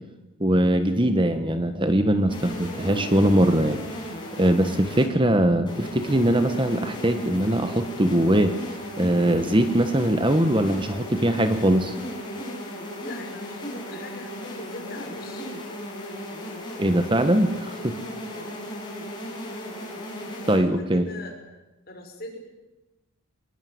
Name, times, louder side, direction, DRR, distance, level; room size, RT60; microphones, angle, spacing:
voice 1, 0.4-3.8 4.4-8.5 9.0-12.0 16.8-18.0 20.4-21.0, right 1 dB, 20° right, 9 dB, 1.2 m, -21 dB
sound 1, 2.3-5.1 5.7-20.6, equal, 20° left, 7.1 m, -36 dB
voice 2, 13.0-15.5 18.3-18.9 20.5-21.4 21.9-22.4, left 1 dB, 45° left, 3 dB, 6.2 m, -41 dB
25.5 x 21.0 x 9.5 m, 1.1 s
head